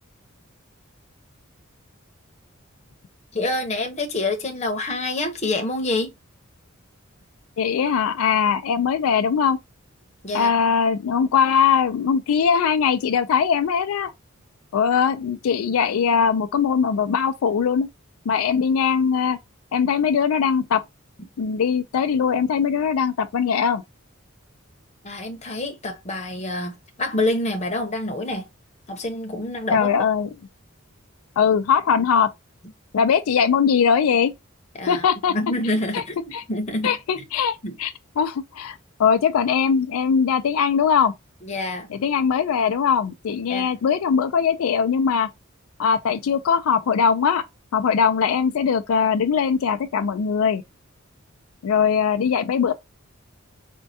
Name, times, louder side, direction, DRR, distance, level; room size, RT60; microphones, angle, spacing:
voice 1, 3.3-6.1 10.2-10.5 25.0-28.5 28.9-30.0 34.8-35.0 35.3-36.2 36.5-37.2 37.6-37.7 41.4-41.9 43.5-43.7, left 2 dB, 30° left, 0.8 m, -27 dB
voice 2, 7.6-9.6 10.3-14.1 14.7-17.9 18.3-19.4 19.7-20.8 21.4-23.8 29.7-30.3 31.4-32.3 32.9-34.3 34.9-35.3 35.9-36.0 36.3-36.4 36.8-41.1 41.9-45.3 45.8-47.4 47.7-50.6 51.6-52.7, left 6 dB, 90° left, 0.4 m, -21 dB
4.3 x 2.2 x 2.6 m
head